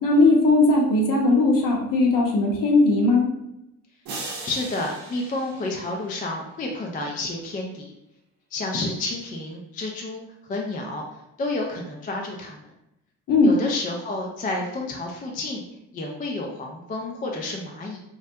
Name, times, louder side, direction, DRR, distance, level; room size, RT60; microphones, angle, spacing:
voice 1, 0.0-3.3 13.3-13.5, left 2 dB, 45° left, -1 dB, 0.8 m, -18 dB
sound 1, 4.1-6.4, right 3 dB, 50° right, 0.7 m, -38 dB
voice 2, 4.4-7.9 8.5-10.2 10.5-11.0 11.4-12.7 13.4-15.6 15.9-18.0, left 2 dB, 20° left, 0 dB, 0.4 m, -30 dB
2.3 x 2.1 x 2.6 m, 0.85 s
hypercardioid pair, 50°, 45 cm